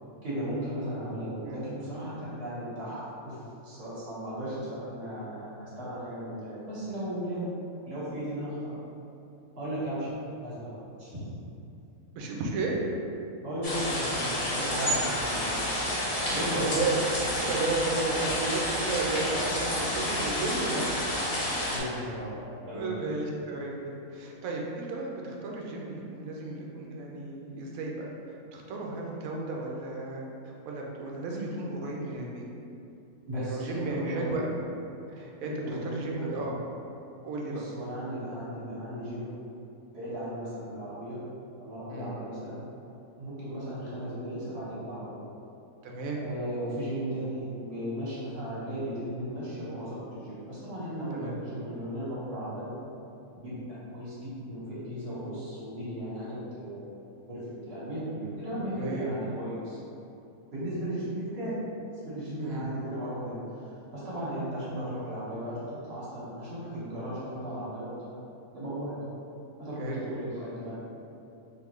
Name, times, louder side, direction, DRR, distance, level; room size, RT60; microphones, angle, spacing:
voice 1, 0.2-7.6 7.8-8.8 9.5-10.1 10.4-11.3 13.4-15.6 16.3-16.7 21.7-23.1 33.3-34.5 35.4-36.4 37.5-39.3 39.9-41.2 41.6-42.6 43.2-45.2 46.1-52.8 53.3-56.9 57.2-59.8 60.5-61.7 62.0-68.2 68.5-69.1 69.6-70.7, equal, 50° right, -10 dB, 1.6 m, -36 dB
voice 2, 12.1-12.8 14.8-15.3 16.2-17.0 17.5-21.0 22.7-23.8 24.1-28.1 28.5-30.2 30.7-32.4 33.3-34.5 35.1-36.6 37.2-37.6 41.9-42.2 45.8-46.2 51.1-51.3 58.7-59.1 62.4-62.7 69.8-70.0, right 3 dB, 75° right, -1 dB, 1.0 m, -34 dB
sound 1, 13.6-21.8, left 1 dB, 45° left, 0.5 m, -30 dB
3.6 x 3.1 x 3.1 m, 2.7 s
omnidirectional pair, 1.5 m